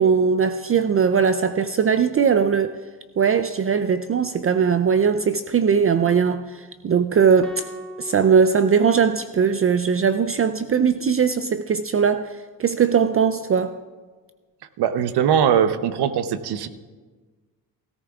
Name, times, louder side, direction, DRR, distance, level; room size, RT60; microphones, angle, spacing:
voice 1, 0.0-2.8 3.2-7.6 8.0-13.8, right 6 dB, 35° right, 0.5 m, -20 dB
sound 1, 7.4-9.8, right 1 dB, ahead, 1.2 m, -40 dB
voice 2, 14.8-16.7, right 8 dB, 75° right, 0.8 m, -20 dB
17.5 x 14.0 x 2.4 m
cardioid pair, 70°, 39 cm